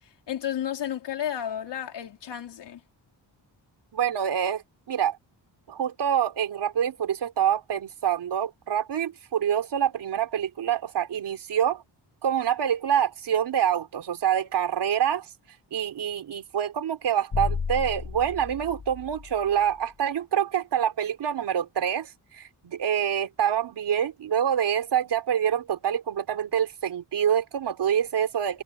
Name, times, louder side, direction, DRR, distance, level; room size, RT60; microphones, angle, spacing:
voice 1, 0.3-2.8, left 10 dB, 70° left, 3.9 m, -32 dB
voice 2, 3.9-5.2 5.7-11.8 12.2-15.3 15.7-28.6, right 9 dB, 70° right, 4.1 m, -26 dB
sound 1, 17.3-19.7, left 5 dB, 40° left, 7.3 m, -33 dB
wide cardioid pair, 140°, 42 cm